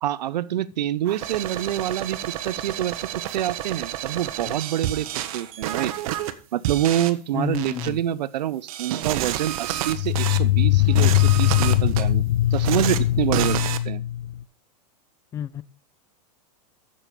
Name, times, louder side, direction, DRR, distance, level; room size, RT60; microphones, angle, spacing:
voice 1, 0.0-2.2 2.4-3.0 3.3-5.1 5.3-5.9 6.5-12.2 12.5-14.0, right 12 dB, 85° right, 0.6 m, -26 dB
sound 1, 1.1-6.3 6.6-7.1 7.5-7.9 8.7-10.4 10.8-12.0 12.5-13.0 13.3-13.8, right 12 dB, 55° right, 1.1 m, -30 dB
sound 2, 4.5-4.6 9.9-14.4, left 14 dB, 75° left, 0.6 m, -21 dB
voice 2, 7.3-8.0 15.3-15.6, left 9 dB, 15° left, 0.4 m, -30 dB
7.5 x 7.1 x 6.7 m
supercardioid pair, 145°, 21 cm